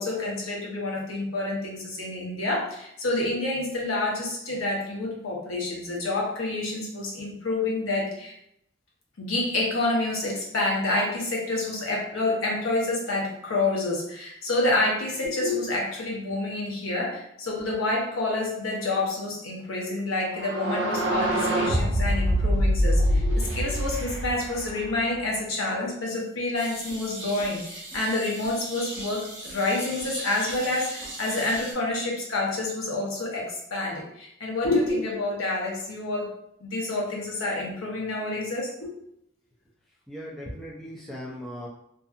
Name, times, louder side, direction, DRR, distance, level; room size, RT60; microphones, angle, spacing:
voice 1, 0.0-8.3 9.2-36.3 36.6-38.9, left 2 dB, 90° left, -2 dB, 0.8 m, -28 dB
sound 1, 20.3-25.2, equal, 65° right, 0.6 m, -24 dB
sound 2, 26.5-31.7, right 1 dB, 35° right, 0.8 m, -39 dB
voice 2, 40.1-41.7, equal, ahead, -5 dB, 0.4 m, -38 dB
2.6 x 2.4 x 2.4 m, 0.75 s
head